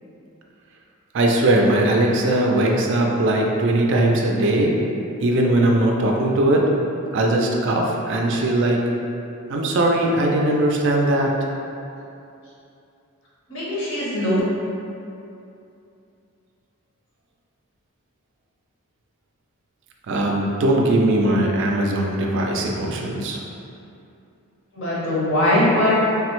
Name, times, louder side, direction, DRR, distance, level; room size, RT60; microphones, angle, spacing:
voice 1, 1.1-4.7 5.2-6.7 7.1-8.8 9.5-11.4 20.1-23.4, right 1 dB, 55° right, 0 dB, 0.3 m, -19 dB
voice 2, 13.5-14.4 24.7-26.0, left 1 dB, 55° left, -7 dB, 0.8 m, -20 dB
3.4 x 2.0 x 2.9 m, 2.7 s
head